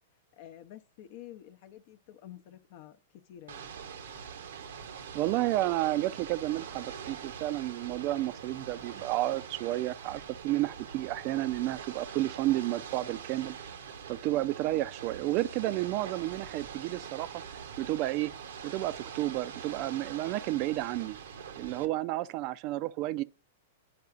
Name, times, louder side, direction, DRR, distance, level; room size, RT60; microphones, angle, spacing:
voice 1, 0.4-3.0 3.3-3.7, left 12 dB, 55° left, 0.6 m, -49 dB
Ocean / Boat Water vehicle, 3.5-21.9, right 7 dB, 70° right, 0.7 m, -44 dB
voice 2, 5.1-13.6 14.1-17.4 17.8-18.3 18.6-21.2 21.6-23.2, right 16 dB, 45° right, 0.4 m, -31 dB
9.4 x 4.7 x 2.4 m
hypercardioid pair, 115°, 0 cm